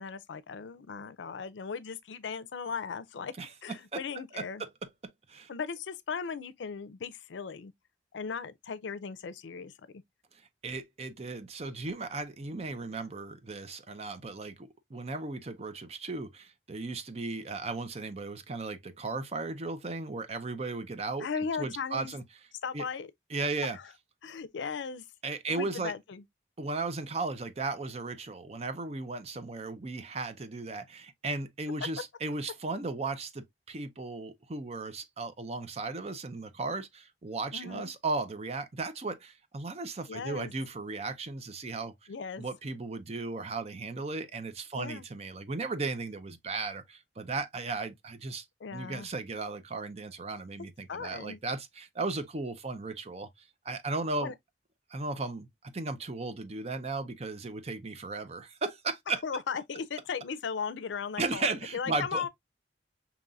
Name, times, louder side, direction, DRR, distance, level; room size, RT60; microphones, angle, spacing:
voice 1, 0.0-3.3 3.6-4.6 5.5-7.7 8.1-10.0 21.2-22.2 22.6-23.1 23.7-23.9 24.2-25.0 25.5-26.2 37.5-37.9 40.1-40.5 42.1-42.5 44.8-45.1 48.6-49.1 50.9-51.4 54.2-54.3 59.2-62.3, left 6 dB, 85° left, 0.5 m, -37 dB
voice 2, 10.6-21.3 21.6-22.2 22.7-22.8 23.3-23.8 25.2-25.9 26.6-41.9 42.4-48.4 48.7-53.3 53.6-54.3 54.9-55.5 55.7-59.2 61.2-62.3, right 3 dB, 35° right, 0.5 m, -36 dB
5.3 x 2.9 x 2.4 m
head